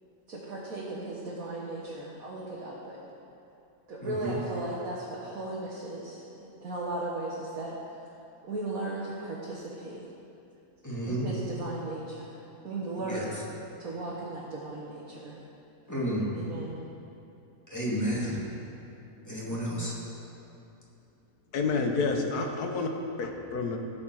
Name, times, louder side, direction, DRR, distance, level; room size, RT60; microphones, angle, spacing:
voice 1, 0.3-3.0 3.9-6.2 6.6-7.8 8.4-10.0 11.0-12.3 12.6-13.4 13.8-15.4 16.3-16.8, right 2 dB, 65° right, -5 dB, 1.9 m, -36 dB
voice 2, 4.0-4.4 10.8-11.3 13.1-13.2 15.9-16.3 17.7-18.4 19.3-19.9, equal, 10° left, -6 dB, 2.3 m, -31 dB
voice 3, 21.5-22.9 23.2-23.8, left 4 dB, 80° left, 3 dB, 1.6 m, -29 dB
16.5 x 7.5 x 4.8 m, 2.7 s
omnidirectional pair, 1.6 m